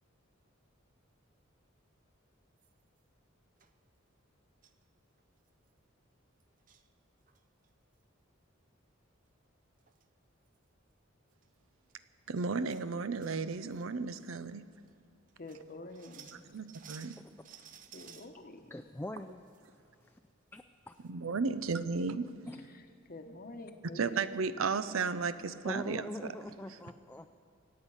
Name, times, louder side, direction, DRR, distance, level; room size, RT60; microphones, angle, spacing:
sound 1, 2.6-3.0 3.6-3.7 4.6-4.8 5.2-5.3 5.5-5.7 6.4-6.9 7.3-7.7 9.4-9.5 9.8-10.0 10.5-10.6 11.3-11.5 11.9-12.0 12.4-12.9 13.2-13.9 14.2-14.3 14.9-15.0 15.3-18.3 18.8-19.7 20.0-20.1 20.5-20.6 20.9-21.1, right 8 dB, 40° right, 0.6 m, -56 dB
voice 1, 12.3-14.6 16.5-17.2 21.1-22.3 24.0-26.0, right 4 dB, 80° right, 13 dB, 0.6 m, -34 dB
voice 2, 15.4-16.5 17.9-18.8 22.0-22.1 22.4-22.8 23.1-24.2, left 2 dB, 45° left, 6 dB, 1.0 m, -48 dB
voice 3, 18.7-19.4 20.0-20.2 20.5-20.9 22.5-22.6 25.6-27.3, left 1 dB, 10° left, 6 dB, 0.3 m, -42 dB
24.5 x 8.8 x 5.6 m, 2.3 s
head